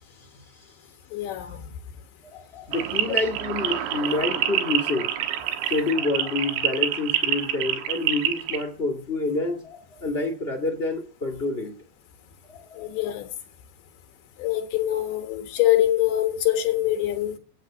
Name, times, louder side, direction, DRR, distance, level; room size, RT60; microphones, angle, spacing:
voice 1, 1.1-1.6 12.8-13.3 14.4-17.4, left 13 dB, 90° left, 3.8 m, -24 dB
voice 2, 2.2-5.1 5.7-11.7 12.5-12.9, left 3 dB, 35° left, 0.9 m, -28 dB
sound 1, 2.7-8.6, right 11 dB, 90° right, 3.5 m, -27 dB
16.0 x 7.9 x 6.2 m
omnidirectional pair, 4.9 m